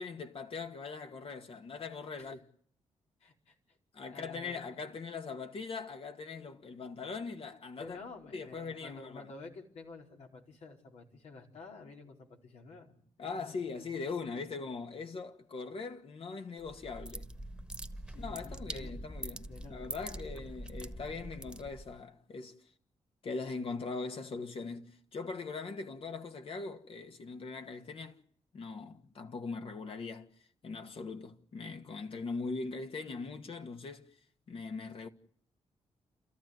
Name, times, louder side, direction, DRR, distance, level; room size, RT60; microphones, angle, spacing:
voice 1, 0.0-2.4 3.9-8.0 8.3-9.3 13.2-17.3 18.2-22.6 23.2-28.2 28.5-30.3 30.6-34.1 34.5-35.1, left 4 dB, 55° left, 2.1 m, -41 dB
voice 2, 3.2-4.6 7.8-13.6 18.1-19.1 19.5-19.8, left 3 dB, 80° left, 4.5 m, -51 dB
sound 1, 16.6-22.0, right 1 dB, 5° right, 1.6 m, -44 dB
29.5 x 14.0 x 9.5 m
cardioid pair, 90°, 11 cm